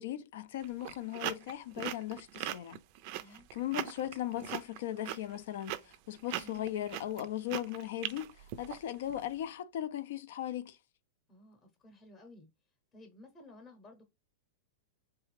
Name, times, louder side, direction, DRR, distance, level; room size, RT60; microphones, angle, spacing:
voice 1, 0.0-2.8 3.3-10.8, left 12 dB, 65° left, 0.5 m, -38 dB
sound 1, 0.6-9.2, right 13 dB, 45° right, 0.4 m, -40 dB
voice 2, 11.3-12.5 12.9-14.0, left 1 dB, 15° left, 0.8 m, -55 dB
3.4 x 3.3 x 3.2 m
supercardioid pair, 145°, 0 cm